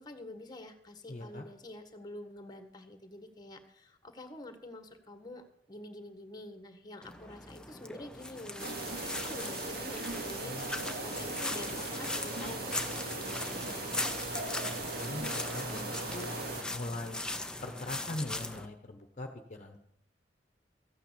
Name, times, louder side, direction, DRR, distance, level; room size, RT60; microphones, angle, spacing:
voice 1, 0.0-14.1 14.4-14.6, left 1 dB, 25° left, 8 dB, 1.7 m, -48 dB
voice 2, 1.1-1.4 10.4-10.9 11.2-11.4 11.7-11.8 15.0-16.3 16.7-17.2 17.6-19.8, left 2 dB, 45° left, 5 dB, 1.2 m, -41 dB
sound 1, 7.0-18.7, left 2 dB, 5° left, 0.9 m, -40 dB
sound 2, 8.6-16.6, right 2 dB, 60° right, 2.7 m, -38 dB
14.5 x 9.1 x 6.9 m, 0.67 s
head